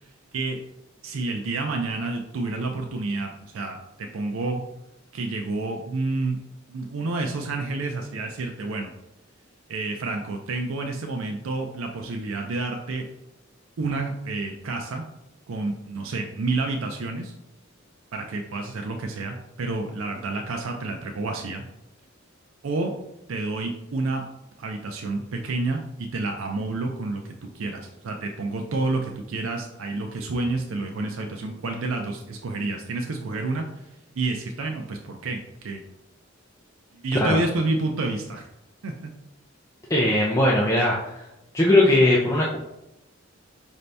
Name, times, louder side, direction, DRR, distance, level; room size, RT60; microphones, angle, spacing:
voice 1, 1.0-4.6 5.1-6.4 6.7-8.9 9.7-13.0 13.8-15.0 15.5-17.3 18.1-21.6 22.6-22.9 23.3-24.3 24.6-33.6 34.2-35.8 36.9-38.5 38.8-39.1, right 3 dB, 80° right, 3 dB, 0.5 m, -29 dB
voice 2, 39.9-41.0 41.5-42.6, left 1 dB, 15° left, -4 dB, 0.5 m, -19 dB
5.1 x 2.7 x 3.3 m, 0.88 s
head